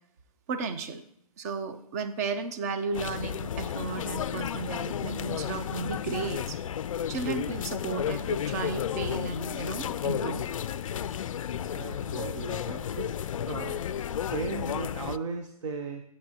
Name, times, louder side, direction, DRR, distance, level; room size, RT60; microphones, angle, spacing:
voice 1, 0.5-1.0 1.4-6.6 7.1-10.4, right 5 dB, 25° right, 11 dB, 0.6 m, -34 dB
sound 1, 2.9-15.2, left 9 dB, 60° left, 0.4 m, -33 dB
voice 2, 11.7-13.2 13.4-13.8 14.1-16.0, right 4 dB, 55° right, 6 dB, 0.9 m, -36 dB
12.0 x 8.5 x 2.9 m, 0.74 s
hypercardioid pair, 155°, 19 cm